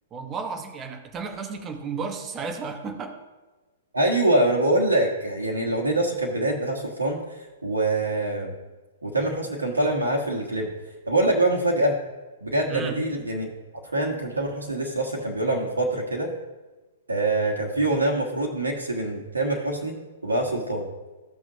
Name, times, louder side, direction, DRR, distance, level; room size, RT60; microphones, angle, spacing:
voice 1, 0.1-3.1 12.7-13.0, right 5 dB, 20° right, 6 dB, 1.1 m, -33 dB
voice 2, 3.9-8.5 9.0-10.7 11.1-12.0 12.4-13.5 13.9-16.3 17.1-20.9, right 2 dB, 75° right, 0 dB, 1.4 m, -24 dB
15.5 x 6.1 x 2.9 m, 1.2 s
figure-of-eight pair, 110°, 0 cm